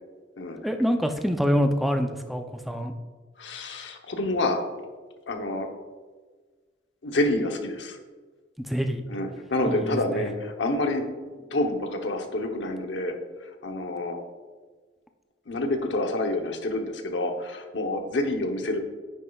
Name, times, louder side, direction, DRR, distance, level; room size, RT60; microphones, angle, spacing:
voice 1, 0.6-2.9 8.7-9.0 9.7-10.0, equal, ahead, 6 dB, 0.4 m, -25 dB
voice 2, 3.4-4.6 5.3-5.7 7.0-8.0 9.1-11.0 11.5-13.1 13.4-14.2 15.5-18.8, left 1 dB, 85° left, 4 dB, 0.9 m, -28 dB
9.3 x 6.5 x 2.3 m, 1.4 s
head